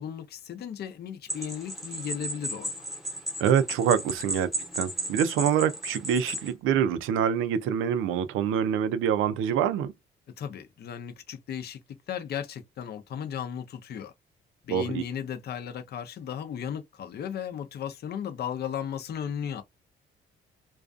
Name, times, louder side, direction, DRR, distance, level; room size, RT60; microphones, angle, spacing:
voice 1, 0.0-2.7 10.4-11.8 12.1-14.1 14.6-19.6, left 8 dB, 55° left, 0.6 m, -35 dB
sound 1, 1.3-6.5, right 1 dB, ahead, 0.9 m, -35 dB
voice 2, 3.4-4.5 4.8-9.9 14.7-15.0, right 8 dB, 90° right, 0.4 m, -25 dB
2.4 x 2.3 x 2.4 m
cardioid pair, 90°, 20 cm